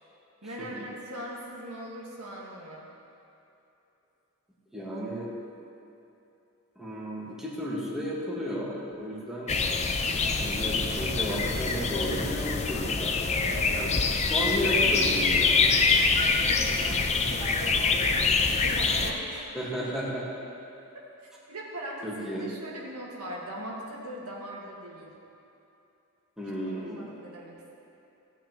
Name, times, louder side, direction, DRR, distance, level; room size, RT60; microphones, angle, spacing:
voice 1, 0.4-2.9 13.4-13.8 15.9-19.3 21.5-25.1 26.5-27.8, right 1 dB, 80° right, -3 dB, 1.7 m, -41 dB
voice 2, 4.7-5.3 6.7-9.5 10.3-13.2 13.7-13.9 14.3-15.7 19.5-20.2 22.0-22.5 26.4-27.1, equal, ahead, -6 dB, 1.6 m, -33 dB
sound 1, 9.5-19.1, left 4 dB, 30° left, 0.5 m, -25 dB
16.0 x 8.5 x 3.1 m, 2.9 s
head